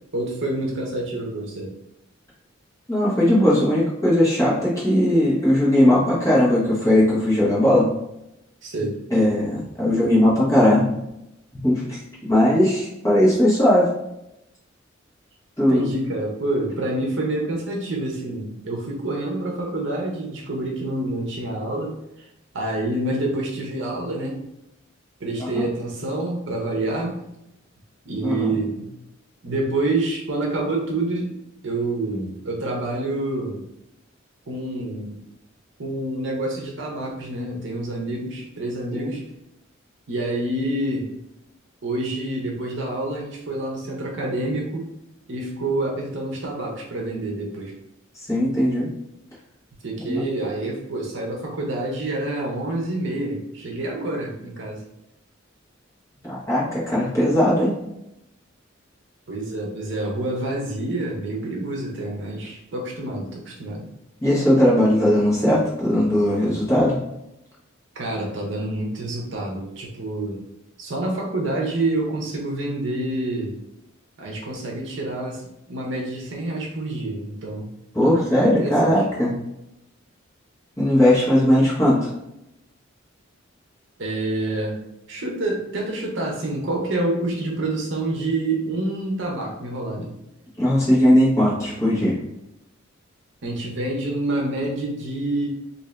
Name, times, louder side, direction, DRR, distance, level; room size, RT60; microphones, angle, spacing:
voice 1, 0.1-1.7 8.6-9.0 15.7-21.9 22.5-24.4 25.2-27.2 28.0-28.9 29.4-31.3 31.6-33.6 34.5-35.2 35.8-39.2 40.1-41.1 41.8-44.9 45.3-47.7 49.8-54.8 59.3-63.8 67.9-70.4 70.8-73.6 74.2-75.4 75.7-77.7 78.0-78.9 84.0-84.8 85.1-90.2 93.4-95.5, right 2 dB, 65° right, 0 dB, 0.7 m, -27 dB
voice 2, 2.9-7.9 9.1-10.9 11.6-12.0 12.3-13.9 15.6-15.9 25.4-25.6 28.2-28.5 38.9-39.1 48.3-48.9 50.1-50.2 56.3-57.7 64.2-67.0 77.9-79.3 80.8-82.1 90.6-92.2, left 1 dB, 15° left, -8 dB, 1.2 m, -18 dB
2.7 x 2.6 x 3.2 m, 0.85 s
head